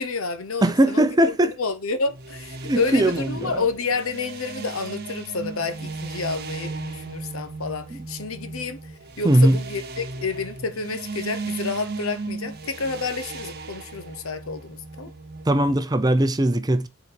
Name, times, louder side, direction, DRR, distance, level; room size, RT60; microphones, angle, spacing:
voice 1, 0.0-15.1, left 4 dB, 70° left, 1.0 m, -29 dB
voice 2, 0.6-1.5 2.6-3.6 9.2-9.6 15.5-16.9, right 1 dB, 20° right, 0.6 m, -19 dB
sound 1, 2.1-15.8, right 3 dB, 45° right, 1.0 m, -36 dB
7.6 x 4.2 x 5.1 m
head